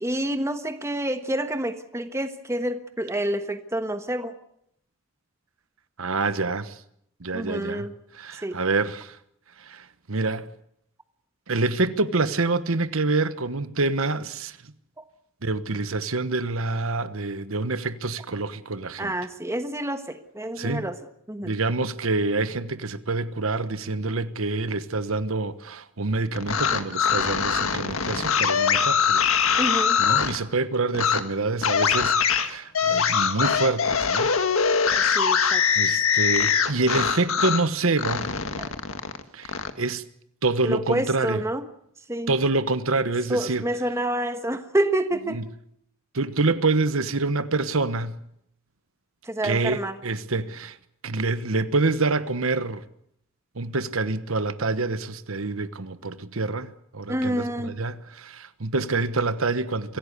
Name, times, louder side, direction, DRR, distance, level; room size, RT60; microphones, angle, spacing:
voice 1, 0.0-4.4 7.3-7.9 8.4-8.6 19.0-21.0 21.3-21.6 29.6-30.0 35.0-35.6 38.6-38.8 40.6-41.6 42.1-42.3 43.3-45.4 49.2-50.0 57.1-57.7, right 1 dB, 15° right, 1.3 m, -28 dB
voice 2, 6.0-6.7 7.2-7.9 8.1-9.2 9.6-10.5 11.5-14.6 15.4-19.1 20.6-20.8 21.4-29.3 30.0-34.3 35.1-35.2 35.8-38.3 39.3-40.0 40.4-41.4 42.3-43.6 45.3-45.4 46.1-48.2 49.4-50.8 51.0-52.8 53.6-60.0, right 3 dB, 75° right, 1.2 m, -26 dB
sound 1, 26.3-30.4 30.9-31.2 31.6-37.7 38.0-39.7, left 6 dB, 75° left, 1.7 m, -22 dB
25.0 x 16.5 x 8.2 m
head